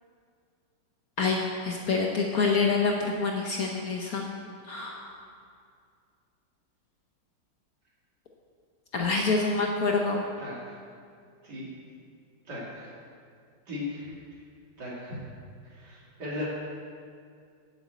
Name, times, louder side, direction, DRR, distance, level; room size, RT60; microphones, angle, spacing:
voice 1, 1.2-4.3 4.7-5.0 8.9-10.2, left 4 dB, 60° left, 0 dB, 1.1 m, -26 dB
voice 2, 10.4-10.8 11.4-11.7 12.4-13.0 13.7-14.1 14.8-15.2 15.6-16.5, left 2 dB, 55° right, -6 dB, 3.1 m, -37 dB
7.7 x 7.2 x 8.0 m, 2.3 s
omnidirectional pair, 2.1 m